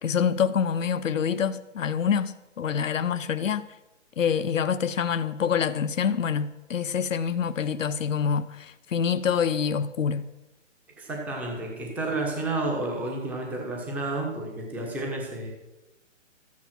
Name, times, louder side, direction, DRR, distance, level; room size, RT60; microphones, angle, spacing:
voice 1, 0.0-3.7 4.2-10.3, left 7 dB, 85° left, 0.8 m, -26 dB
voice 2, 11.0-15.5, right 2 dB, 5° right, 1.1 m, -31 dB
13.5 x 9.5 x 6.0 m
hypercardioid pair, 160°, 38 cm